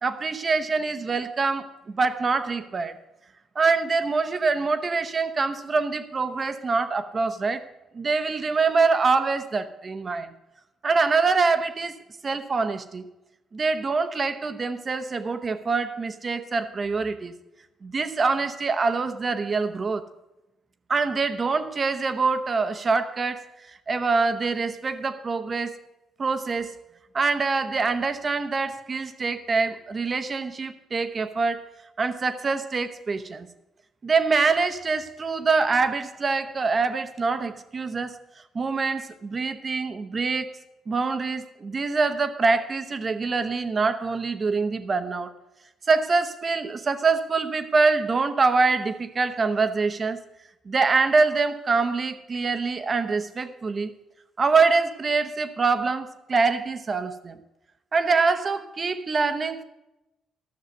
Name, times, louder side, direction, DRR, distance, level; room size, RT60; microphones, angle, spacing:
voice 1, 0.0-2.9 3.5-7.7 7.9-10.3 10.8-12.0 12.2-13.0 13.5-17.3 17.8-20.1 20.9-25.8 26.2-26.8 27.1-31.6 32.0-33.5 34.0-38.2 38.5-40.6 40.9-45.3 45.9-50.2 50.7-53.9 54.4-57.4 57.9-59.6, right 4 dB, 35° right, 10 dB, 0.9 m, -25 dB
12.5 x 6.6 x 7.9 m, 0.97 s
cardioid pair, 90°, 0 cm